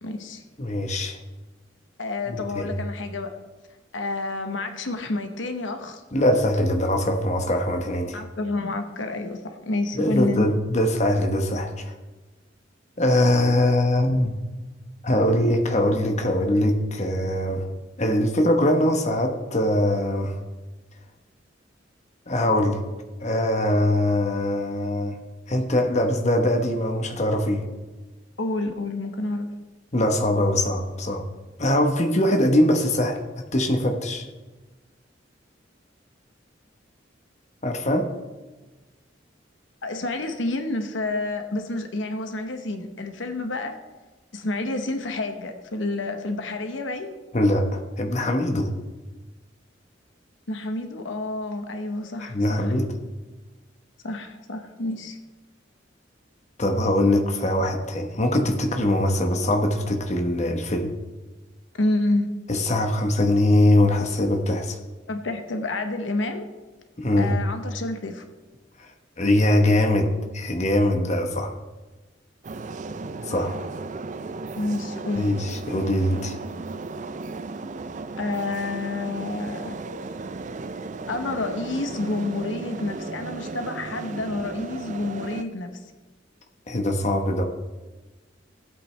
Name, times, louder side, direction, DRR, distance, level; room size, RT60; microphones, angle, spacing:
voice 1, 0.0-0.4 2.0-3.3 3.9-6.0 8.1-10.5 28.4-29.5 39.8-43.8 44.3-47.2 50.5-52.7 54.0-55.2 61.7-62.3 65.1-66.4 67.2-68.2 74.6-75.3 78.2-79.7 81.1-85.7, left 2 dB, 90° left, 6 dB, 1.0 m, -29 dB
voice 2, 0.6-1.2 2.3-2.7 6.1-8.2 9.9-11.9 13.0-14.4 15.0-17.7 18.0-20.4 22.3-22.8 23.2-25.2 25.5-27.7 29.9-31.2 31.6-34.3 37.6-38.1 47.3-48.7 52.2-52.9 56.6-60.9 62.5-64.8 67.0-67.4 68.8-68.9 69.2-71.5 73.3-73.6 75.2-76.3 86.7-87.4, left 1 dB, 40° left, 3 dB, 1.1 m, -22 dB
sound 1, 72.4-85.4, right 3 dB, 40° right, 0.4 m, -35 dB
16.5 x 8.4 x 3.3 m, 1.2 s
head